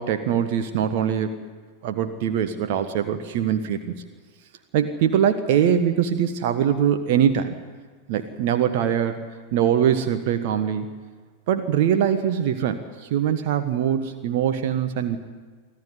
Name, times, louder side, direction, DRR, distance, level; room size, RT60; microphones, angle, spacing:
voice 1, 0.0-1.4 1.8-3.9 4.7-7.5 8.1-9.2 9.5-10.9 11.5-15.2, right 9 dB, 50° right, 8 dB, 1.4 m, -22 dB
25.5 x 15.0 x 9.8 m, 1.5 s
figure-of-eight pair, 90°, 0 cm